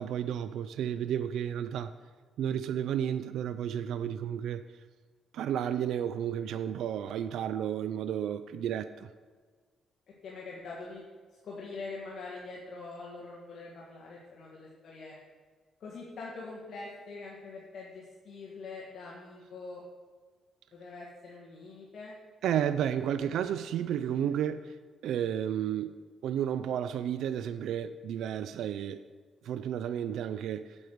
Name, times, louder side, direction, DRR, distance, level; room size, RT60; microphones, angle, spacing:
voice 1, 0.0-1.9 2.4-4.6 5.3-9.1 22.4-24.8 25.0-26.0 26.2-29.0 29.4-30.8, right 9 dB, 85° right, 0.3 m, -32 dB
voice 2, 10.2-11.0 11.3-15.1 15.8-19.8 20.7-22.1 23.2-23.6 23.9-24.3, left 3 dB, 65° left, 1.8 m, -44 dB
8.7 x 8.0 x 4.6 m
cardioid pair, 100°, 0 cm